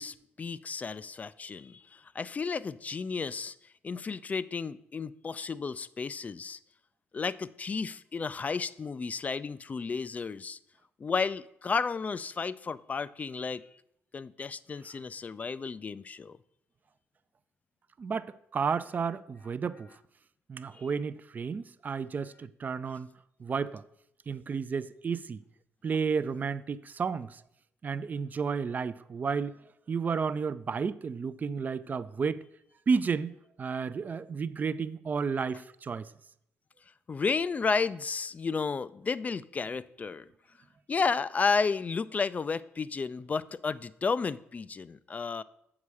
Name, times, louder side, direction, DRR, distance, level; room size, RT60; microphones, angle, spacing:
voice 1, 0.0-3.5 3.8-6.6 7.1-10.6 11.0-13.6 14.1-16.4 37.1-40.3 40.9-45.4, left 5 dB, 30° left, 0.3 m, -32 dB
voice 2, 18.0-19.9 20.5-23.1 23.4-23.8 24.3-25.4 25.8-27.4 27.8-29.6 29.9-32.4 32.9-36.1, right 5 dB, 35° right, 0.4 m, -32 dB
7.4 x 4.8 x 6.9 m
cardioid pair, 90°, 5 cm